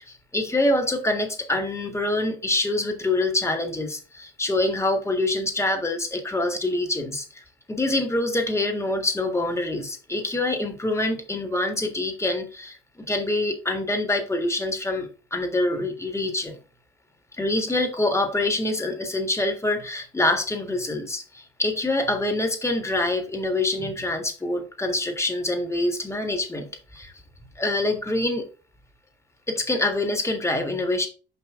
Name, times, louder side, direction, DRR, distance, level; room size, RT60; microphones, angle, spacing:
voice 1, 0.0-16.6 17.4-27.1 27.6-28.5 29.5-31.1, left 2 dB, 15° left, 4 dB, 1.8 m, -25 dB
5.5 x 5.5 x 3.7 m, 0.35 s
cardioid pair, 90°, 20 cm